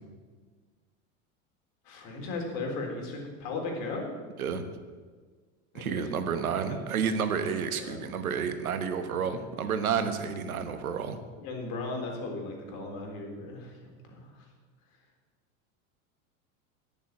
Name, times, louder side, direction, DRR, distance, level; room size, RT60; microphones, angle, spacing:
voice 1, 1.9-4.1 5.7-6.0 6.7-6.8 7.4-7.5 7.8-8.0 11.4-14.3, left 3 dB, 55° left, 1 dB, 3.6 m, -36 dB
voice 2, 5.7-11.2, right 6 dB, 90° right, 9 dB, 1.3 m, -30 dB
11.0 x 7.1 x 8.6 m, 1.5 s
hypercardioid pair, 95°, 42 cm